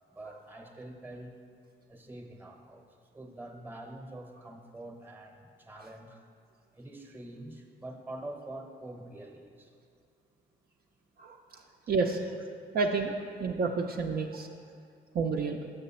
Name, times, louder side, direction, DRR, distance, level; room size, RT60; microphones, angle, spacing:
voice 1, 0.1-1.3 1.9-6.3 6.7-9.7 11.5-11.8, right 1 dB, 10° right, 4 dB, 0.8 m, -45 dB
voice 2, 11.2-12.2 12.7-13.1 13.4-14.5 15.1-15.6, right 4 dB, 50° right, 2 dB, 0.5 m, -30 dB
6.7 x 6.6 x 4.2 m, 2.3 s
cardioid pair, 90°, 20 cm